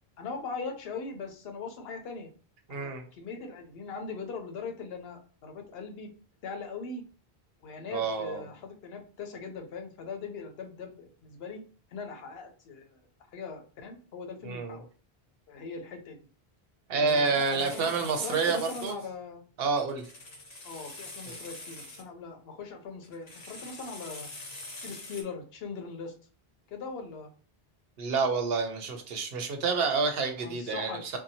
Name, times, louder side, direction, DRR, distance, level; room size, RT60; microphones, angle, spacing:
voice 1, 0.2-2.3 2.7-6.1 6.4-7.0 7.6-11.6 11.9-13.0 13.3-14.9 15.5-16.2 17.0-19.4 20.6-24.3 24.8-26.2 26.7-27.3 30.4-31.0, left 4 dB, 80° left, 4 dB, 0.8 m, -40 dB
voice 2, 2.7-3.0 7.9-8.4 14.4-14.8 16.9-18.9 19.6-20.0 21.3-21.4 28.0-31.2, right 4 dB, 75° right, 5 dB, 0.8 m, -28 dB
sound 1, 17.1-19.0 19.8-22.0 23.0-25.2, left 2 dB, 45° left, 0.7 m, -45 dB
2.7 x 2.1 x 2.7 m, 0.39 s
omnidirectional pair, 1.0 m